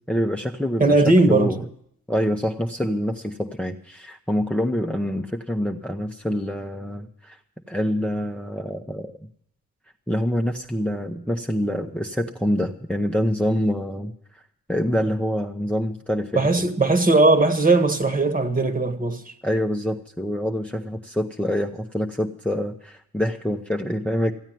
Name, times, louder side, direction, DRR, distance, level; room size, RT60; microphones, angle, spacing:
voice 1, 0.1-1.0 1.3-1.6 2.1-7.4 7.7-9.1 10.1-14.1 14.7-16.7 19.4-24.3, equal, 5° left, 0.9 m, -26 dB
voice 2, 0.8-1.6 16.3-19.3, right 2 dB, 25° right, 1.6 m, -18 dB
14.5 x 8.9 x 9.2 m
cardioid pair, 85°, 31 cm